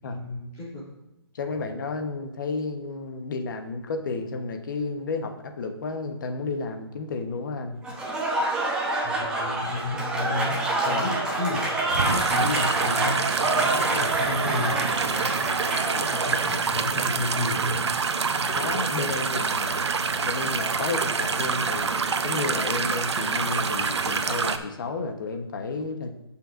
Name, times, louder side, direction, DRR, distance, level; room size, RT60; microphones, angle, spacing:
voice 1, 0.0-0.8 9.0-10.6 10.8-11.6 11.9-14.8 15.2-15.6 15.9-17.8 18.3-18.5, left 2 dB, 20° left, -7 dB, 2.8 m, -32 dB
voice 2, 1.3-7.8 9.2-9.3 10.8-11.1 18.5-19.8 20.2-26.1, left 3 dB, 50° left, 5 dB, 1.0 m, -32 dB
Applause / Crowd, 7.8-16.7, right 2 dB, 5° right, 0.9 m, -27 dB
sound 1, 11.9-24.6, right 5 dB, 90° right, 0.7 m, -26 dB
15.5 x 5.7 x 2.5 m, 0.93 s
hypercardioid pair, 160°, 14 cm